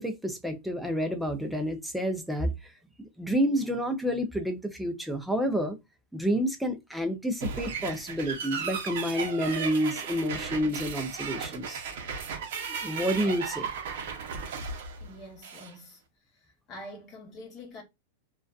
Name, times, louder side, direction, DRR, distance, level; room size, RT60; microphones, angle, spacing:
voice 1, 0.0-2.7 3.2-5.8 6.1-11.8 12.7-13.7, equal, ahead, 0.4 m, -29 dB
sound 1, 7.4-15.7, right 5 dB, 65° right, 0.6 m, -35 dB
voice 2, 15.0-16.0 16.7-17.8, left 1 dB, 25° left, 0.8 m, -45 dB
2.4 x 2.2 x 2.3 m
supercardioid pair, 165°, 0 cm